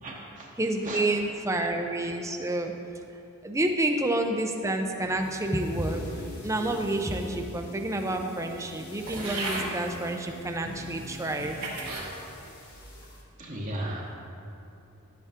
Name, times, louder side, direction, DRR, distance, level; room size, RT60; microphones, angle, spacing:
voice 1, 0.0-0.5 0.8-1.0 1.5-1.6 13.4-14.1, right 1 dB, 35° right, -3 dB, 1.0 m, -36 dB
voice 2, 0.6-2.7 3.4-6.0 6.4-11.6, right 1 dB, 15° right, 4 dB, 0.5 m, -29 dB
sound 1, 5.0-11.1 11.4-11.7, left 1 dB, 85° left, 1.3 m, -42 dB
sound 2, 5.2-13.2, left 3 dB, 45° left, 1.7 m, -53 dB
sound 3, 9.1-9.7 10.5-10.6 11.3-12.1 12.7-13.1, right 2 dB, 90° right, 2.3 m, -35 dB
11.5 x 8.1 x 3.6 m, 2.8 s
head